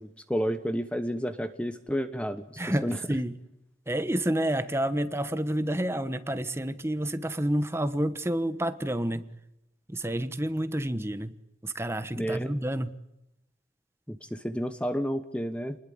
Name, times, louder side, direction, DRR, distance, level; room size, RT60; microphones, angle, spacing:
voice 1, 0.0-3.0 12.2-12.5 14.1-15.8, equal, 5° left, 10 dB, 1.0 m, -31 dB
voice 2, 2.6-3.3 3.9-9.3 9.9-11.3 11.6-12.9, right 1 dB, 15° right, 11 dB, 1.2 m, -29 dB
28.5 x 20.5 x 8.7 m, 0.90 s
head